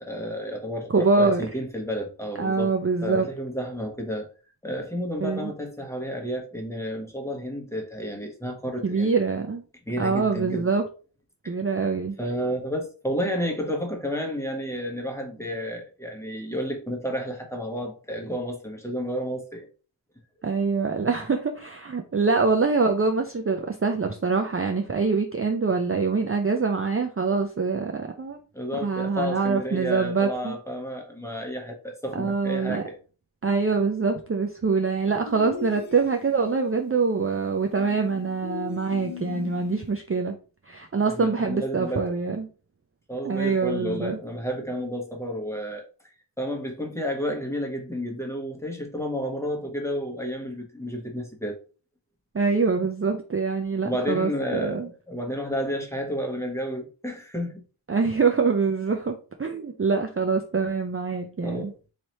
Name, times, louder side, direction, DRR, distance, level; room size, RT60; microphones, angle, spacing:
voice 1, 0.0-2.7 3.0-4.3 4.6-9.1 9.9-10.7 11.4-11.5 12.2-19.7 28.5-33.0 41.1-42.1 43.1-45.8 46.4-51.6 53.8-57.6 61.4-61.7, equal, 5° left, 1.2 m, -31 dB
voice 2, 0.9-1.4 2.4-3.3 5.2-5.5 8.8-9.6 10.0-10.8 11.5-12.2 20.4-28.4 28.8-30.5 32.1-32.8 33.4-40.4 40.7-42.5 43.2-44.2 52.3-54.9 57.9-61.7, right 4 dB, 30° right, 0.5 m, -24 dB
sound 1, 35.3-36.5 37.8-40.0, left 7 dB, 70° left, 0.8 m, -38 dB
3.2 x 2.8 x 4.2 m
wide cardioid pair, 40°, 49 cm